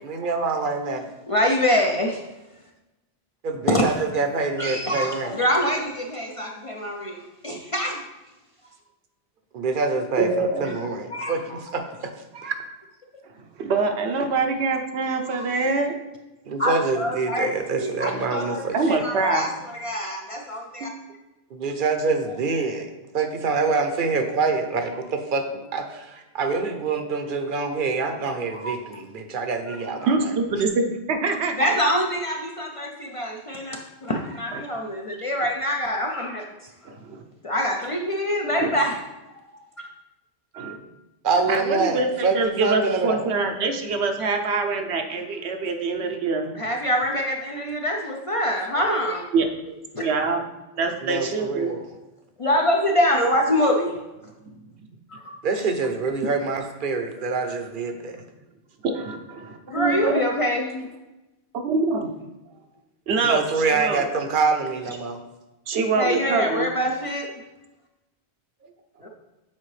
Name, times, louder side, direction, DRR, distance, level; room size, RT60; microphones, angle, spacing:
voice 1, 0.0-1.1 3.4-5.3 9.5-12.5 16.5-18.8 21.5-30.3 41.2-43.3 51.0-51.8 55.4-58.2 63.2-65.2, right 4 dB, 55° right, 7 dB, 0.8 m, -26 dB
voice 2, 1.3-2.2 3.7-3.9 4.6-8.0 10.6-11.6 15.2-15.6 16.6-17.5 17.8-20.9 28.5-29.0 29.7-29.8 30.0-30.1 31.6-36.5 37.4-39.0 39.5-39.9 46.5-49.3 49.9-50.1 52.4-53.9 55.1-55.4 59.7-60.9 66.0-67.3 69.0-69.1, equal, 45° left, 1 dB, 0.5 m, -25 dB
voice 3, 10.2-10.6 13.6-16.0 18.7-19.5 20.8-20.9 30.1-31.7 36.8-37.2 38.6-38.7 40.5-40.8 41.5-46.5 49.3-49.5 50.0-50.4 50.7-51.7 58.8-60.2 61.5-62.1 63.1-63.4 63.8-64.0 65.7-66.7, right 3 dB, 80° right, 5 dB, 1.0 m, -24 dB
7.4 x 4.6 x 3.2 m, 1.0 s
omnidirectional pair, 1.1 m